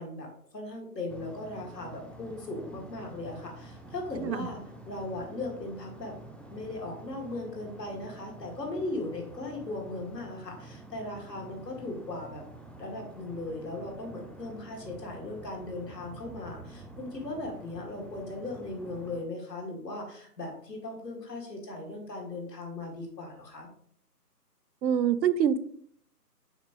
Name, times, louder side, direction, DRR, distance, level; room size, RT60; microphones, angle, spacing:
voice 1, 0.0-4.6 4.9-6.1 6.5-12.4 12.8-23.7, left 2 dB, 75° left, 0 dB, 2.4 m, -38 dB
sound 1, 1.1-19.2, right 2 dB, 5° left, 0.3 m, -48 dB
voice 2, 24.8-25.6, right 8 dB, 85° right, 14 dB, 0.7 m, -25 dB
6.5 x 4.7 x 3.2 m, 0.64 s
hypercardioid pair, 170°, 49 cm